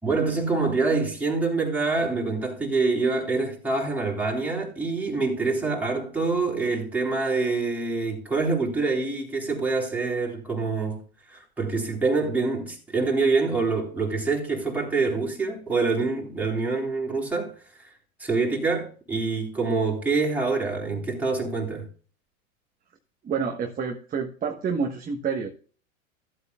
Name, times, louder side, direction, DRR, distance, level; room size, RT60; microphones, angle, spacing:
voice 1, 0.0-11.0 11.3-17.5 18.2-21.9, right 3 dB, 5° right, 3.8 m, -26 dB
voice 2, 23.2-25.5, right 6 dB, 20° right, 1.3 m, -28 dB
15.5 x 8.2 x 2.3 m
hypercardioid pair, 110°, 43 cm